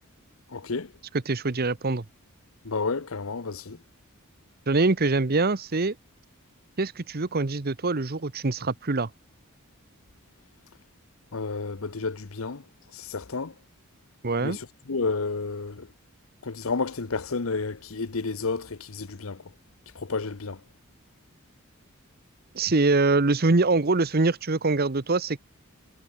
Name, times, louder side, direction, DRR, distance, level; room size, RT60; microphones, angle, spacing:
voice 1, 0.5-0.9 2.6-3.8 11.3-12.6 12.9-13.5 14.4-15.9 16.4-19.4 19.9-20.6, left 4 dB, 70° left, 0.9 m, -31 dB
voice 2, 1.3-2.0 4.7-5.9 6.8-9.1 14.2-14.6 22.5-25.4, right 3 dB, 45° right, 0.9 m, -24 dB
head